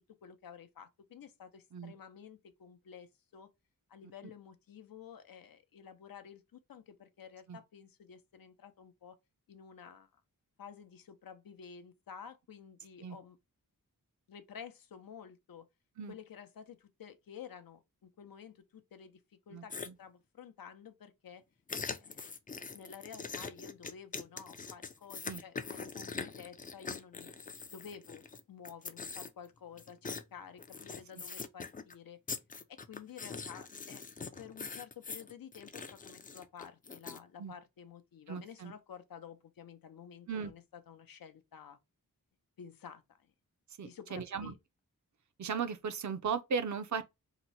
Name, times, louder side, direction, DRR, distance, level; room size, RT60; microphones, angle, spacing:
voice 1, 0.2-3.5 3.9-9.2 9.5-10.2 10.6-13.4 14.3-15.7 16.1-19.2 19.5-21.4 21.8-22.3 22.7-27.3 27.7-32.2 32.7-34.1 34.4-41.8 42.6-43.3 43.8-44.6, left 7 dB, 75° left, 0.6 m, -51 dB
voice 2, 19.5-19.9 25.3-25.4 37.4-37.5 38.3-38.7 40.3-40.5 43.8-44.5 45.4-47.0, right 6 dB, 55° right, 0.5 m, -37 dB
sound 1, 19.7-19.9 21.7-28.4 28.7-29.5 29.8-30.2 30.6-31.9 32.3-37.2, left 4 dB, 25° left, 0.3 m, -43 dB
2.9 x 2.1 x 3.9 m
wide cardioid pair, 75°, 34 cm